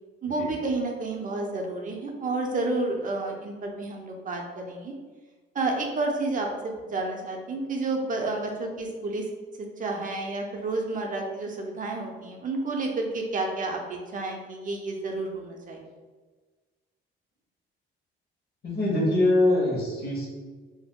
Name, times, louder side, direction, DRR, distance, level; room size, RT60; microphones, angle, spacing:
voice 1, 0.2-4.9 5.5-9.3 9.8-15.8, right 2 dB, 40° right, 1 dB, 0.5 m, -30 dB
voice 2, 18.6-20.3, left 1 dB, 55° left, -3 dB, 1.2 m, -23 dB
2.7 x 2.1 x 3.6 m, 1.4 s
cardioid pair, 90°, 20 cm